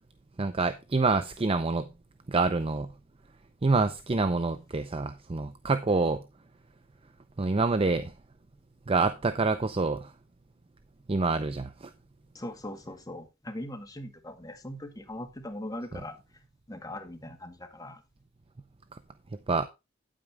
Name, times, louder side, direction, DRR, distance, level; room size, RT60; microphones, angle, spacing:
voice 1, 0.4-1.9 2.3-2.9 3.6-6.2 7.4-8.1 8.9-10.1 11.1-11.9 19.5-19.7, right 3 dB, 30° right, 0.6 m, -26 dB
voice 2, 12.3-16.2 16.7-18.0, left 1 dB, 20° left, 1.9 m, -40 dB
9.3 x 8.9 x 3.5 m
head